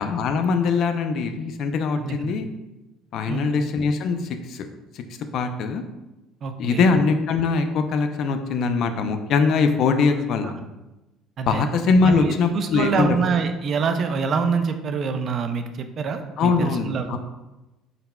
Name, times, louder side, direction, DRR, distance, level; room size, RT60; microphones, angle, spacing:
voice 1, 0.0-2.5 3.1-4.2 4.5-4.7 4.9-5.0 5.3-5.8 6.6-10.5 11.5-13.2 16.4-17.2, left 4 dB, 55° left, 7 dB, 0.4 m, -22 dB
voice 2, 2.0-2.4 3.3-3.5 6.4-6.9 10.4-10.5 11.4-11.6 12.0-17.2, right 5 dB, 40° right, 7 dB, 0.4 m, -26 dB
4.2 x 3.9 x 2.2 m, 1.0 s
cardioid pair, 130°, 0 cm